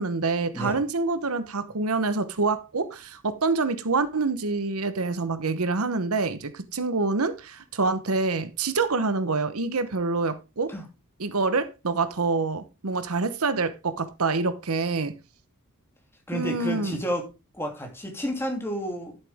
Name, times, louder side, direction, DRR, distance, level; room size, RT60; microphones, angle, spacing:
voice 1, 0.0-10.7 11.2-15.1 16.3-17.0, right 3 dB, 80° right, 1.0 m, -26 dB
voice 2, 16.3-17.3 17.5-19.2, equal, 10° left, 2.7 m, -31 dB
11.5 x 7.7 x 3.6 m
head